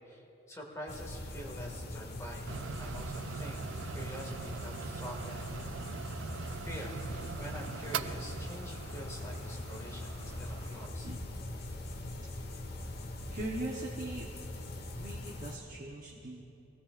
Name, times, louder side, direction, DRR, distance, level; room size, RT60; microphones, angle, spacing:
voice 1, 0.5-5.6 6.6-7.1 7.4-11.1, equal, 15° left, -2 dB, 2.1 m, -46 dB
sound 1, 0.9-15.6, left 1 dB, 55° left, 1.3 m, -41 dB
sound 2, 2.5-10.9, right 7 dB, 70° right, 0.4 m, -43 dB
voice 2, 12.2-12.6 13.3-14.3 14.9-16.4, right 2 dB, 45° right, -2 dB, 1.0 m, -41 dB
22.5 x 17.0 x 2.5 m, 3.0 s
head